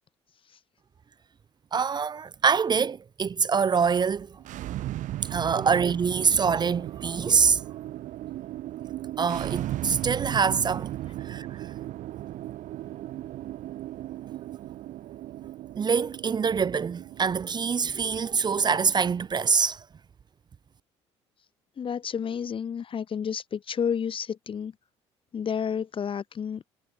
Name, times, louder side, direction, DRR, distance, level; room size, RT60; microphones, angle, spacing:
voice 1, 1.7-4.3 5.3-7.6 9.2-10.9 11.2-11.5 15.8-19.8, right 6 dB, 30° right, 0.5 m, -24 dB
sound 1, 4.4-19.3, right 14 dB, 65° right, 3.2 m, -37 dB
voice 2, 21.8-24.7 25.3-26.6, left 7 dB, 40° left, 0.9 m, -30 dB
hypercardioid pair, 60°, 14 cm